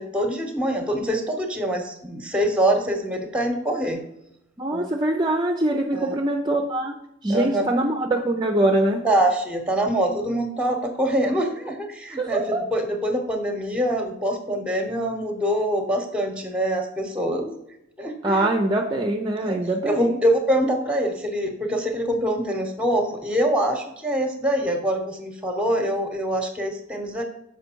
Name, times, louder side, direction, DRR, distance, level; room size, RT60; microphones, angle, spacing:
voice 1, 0.0-4.0 4.7-4.9 5.9-6.2 7.3-7.6 9.0-17.6 18.0-18.5 19.4-19.6 19.8-27.2, right 1 dB, 5° right, 5 dB, 1.0 m, -24 dB
voice 2, 4.6-9.1 12.2-12.7 18.2-20.2, right 1 dB, 20° right, 3 dB, 0.5 m, -23 dB
6.5 x 5.0 x 4.5 m, 0.82 s
head